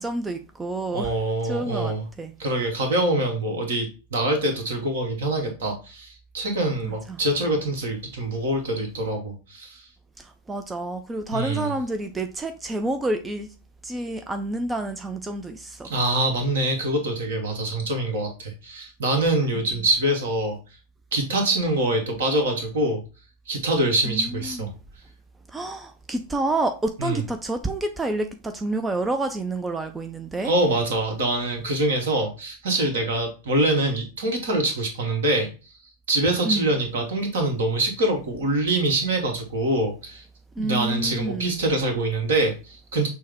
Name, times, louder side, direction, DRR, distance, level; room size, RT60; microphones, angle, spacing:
voice 1, 0.0-1.1 1.4-2.3 6.8-7.2 10.2-13.5 13.8-15.9 24.1-24.3 25.5-30.5 36.5-36.7 40.6-41.5, right 2 dB, 10° right, 0.4 m, -28 dB
voice 2, 0.9-2.1 2.4-9.9 11.3-11.7 15.8-20.6 21.1-23.0 23.5-24.7 27.0-27.2 30.4-35.5 36.1-40.2 40.6-43.1, right 1 dB, 60° right, 1.2 m, -24 dB
6.2 x 2.1 x 3.4 m
figure-of-eight pair, 90°, 0 cm